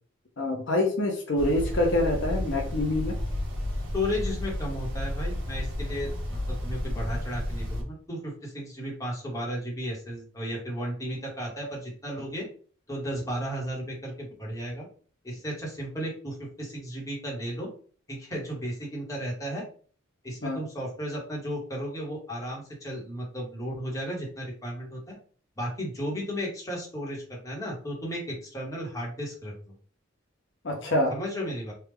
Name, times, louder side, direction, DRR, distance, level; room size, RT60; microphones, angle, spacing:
voice 1, 0.4-3.2 20.4-20.6 30.6-31.1, left 1 dB, 60° left, 2 dB, 0.6 m, -26 dB
sound 1, 1.4-7.8, left 1 dB, 60° right, 1.2 m, -32 dB
voice 2, 3.9-12.5 12.9-14.8 15.2-17.7 18.1-19.6 20.2-25.1 25.6-29.7 31.1-31.7, equal, 15° left, -3 dB, 1.1 m, -34 dB
3.2 x 2.3 x 3.5 m, 0.43 s
head